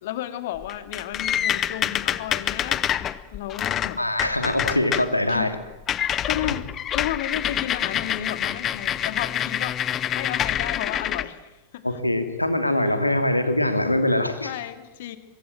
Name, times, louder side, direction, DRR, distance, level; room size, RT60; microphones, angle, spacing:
voice 1, 0.0-2.9 3.3-4.0 5.3-5.5 6.3-9.8 10.1-11.9 12.9-13.0 14.4-15.2, left 12 dB, 55° left, 11 dB, 2.4 m, -33 dB
sound 1, 0.5-5.1 5.4-5.6 5.9-11.2, left 10 dB, 30° left, 1.1 m, -26 dB
voice 2, 4.0-5.6 11.8-14.5, left 1 dB, 85° left, 9 dB, 2.7 m, -23 dB
25.0 x 23.5 x 9.0 m, 1.0 s
figure-of-eight pair, 90°, 0 cm